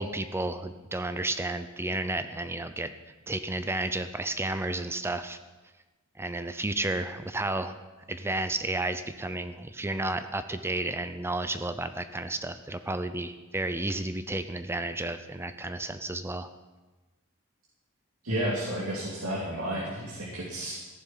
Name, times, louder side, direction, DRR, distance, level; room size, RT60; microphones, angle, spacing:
voice 1, 0.0-2.9 3.3-5.4 6.2-7.8 8.1-16.5, right 2 dB, 10° right, 10 dB, 0.6 m, -32 dB
voice 2, 18.2-20.7, right 1 dB, 80° right, -4 dB, 2.7 m, -31 dB
15.0 x 11.0 x 5.7 m, 1.2 s
head